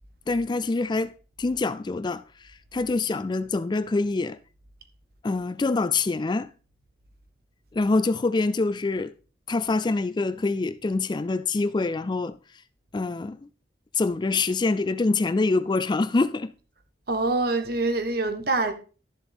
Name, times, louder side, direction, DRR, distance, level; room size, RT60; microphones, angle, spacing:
voice 1, 0.3-1.1 1.4-4.4 5.2-6.5 7.7-9.1 9.5-12.4 12.9-13.5 13.9-16.5, left 3 dB, 25° left, 0.4 m, -25 dB
voice 2, 17.1-18.7, right 3 dB, 60° right, 1.4 m, -25 dB
12.0 x 7.3 x 3.6 m
head